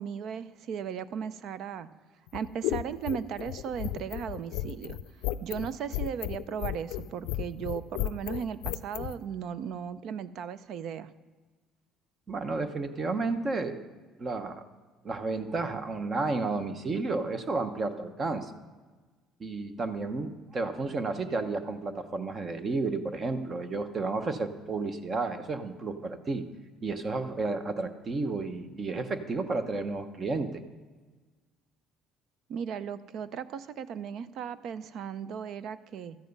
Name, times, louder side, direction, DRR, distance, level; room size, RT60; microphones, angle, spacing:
voice 1, 0.0-1.9 2.3-5.0 5.4-11.1 32.5-36.2, right 7 dB, 65° right, 15 dB, 0.5 m, -36 dB
sound 1, 2.3-9.1, left 15 dB, 90° left, 0.4 m, -34 dB
voice 2, 12.3-13.8 14.2-14.6 15.0-18.5 19.4-26.4 26.8-30.6, right 3 dB, 35° right, 9 dB, 0.9 m, -32 dB
13.0 x 9.2 x 5.3 m, 1.3 s
cardioid pair, 100°, 0 cm